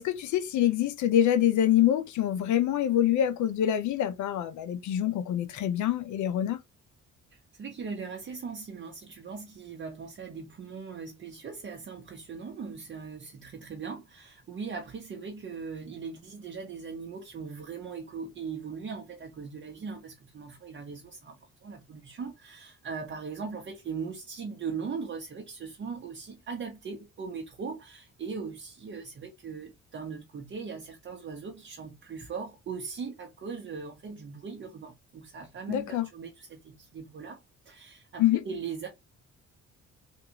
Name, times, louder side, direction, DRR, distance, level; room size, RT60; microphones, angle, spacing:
voice 1, 0.0-6.6 35.7-36.1 38.2-38.4, left 11 dB, 75° left, 0.6 m, -25 dB
voice 2, 7.3-38.9, right 5 dB, 40° right, 0.8 m, -39 dB
3.5 x 2.4 x 2.8 m
cardioid pair, 90°, 30 cm